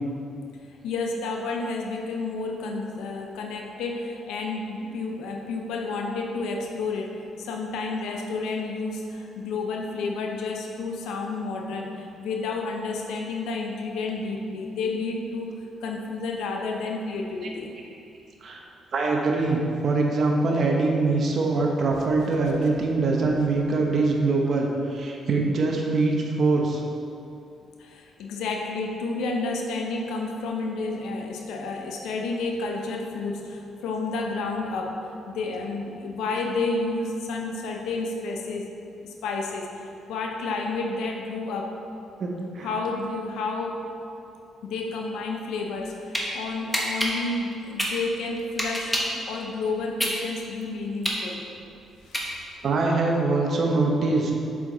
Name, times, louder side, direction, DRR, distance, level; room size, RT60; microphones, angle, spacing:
voice 1, 0.8-15.5 15.8-17.7 27.8-38.7 39.0-41.8 42.6-43.8 44.6-49.0 49.3-51.5 52.0-52.4, left 3 dB, 85° left, 1 dB, 0.7 m, -30 dB
voice 2, 18.9-26.8 42.2-42.3 42.5-42.7 52.6-54.3, right 3 dB, 55° right, 0 dB, 0.9 m, -23 dB
sound 1, 45.7-46.3 46.7-49.2 49.6-52.7, equal, 5° left, 1.1 m, -28 dB
6.9 x 5.1 x 3.9 m, 2.6 s
cardioid pair, 90°, 0 cm